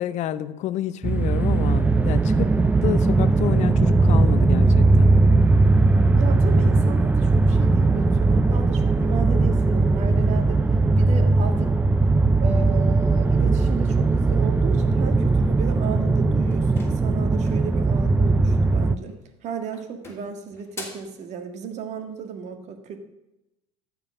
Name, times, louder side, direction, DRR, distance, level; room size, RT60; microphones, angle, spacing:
voice 1, 0.0-5.1, left 12 dB, 50° left, 0.6 m, -29 dB
sound 1, 1.0-19.0, right 3 dB, 10° right, 0.4 m, -19 dB
voice 2, 6.1-10.7 11.0-11.7 12.4-23.0, right 6 dB, 50° right, 1.7 m, -34 dB
sound 2, 16.5-17.7 19.0-19.4 19.7-21.2, left 2 dB, 15° left, 2.8 m, -43 dB
13.0 x 5.0 x 7.4 m
supercardioid pair, 95°, 15 cm